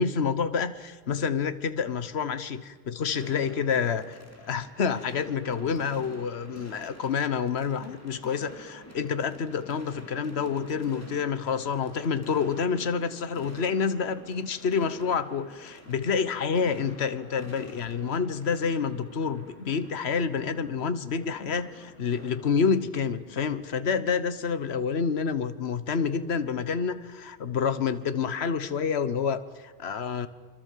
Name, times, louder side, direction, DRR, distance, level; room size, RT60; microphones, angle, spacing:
voice 1, 0.0-4.2 4.5-30.3, left 6 dB, 75° left, 12 dB, 1.4 m, -28 dB
sound 1, 3.1-22.7, equal, 15° left, 3.1 m, -49 dB
26.0 x 25.0 x 7.5 m, 1.4 s
omnidirectional pair, 1.1 m